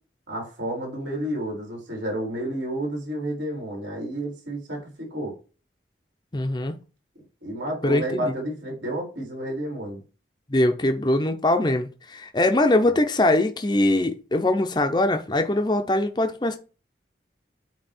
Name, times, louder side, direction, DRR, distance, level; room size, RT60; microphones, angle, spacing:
voice 1, 0.3-5.3 7.4-10.0, right 1 dB, 80° right, 3.9 m, -30 dB
voice 2, 6.3-6.8 7.8-8.3 10.5-16.6, left 1 dB, 25° left, 0.6 m, -22 dB
8.8 x 2.9 x 4.3 m
head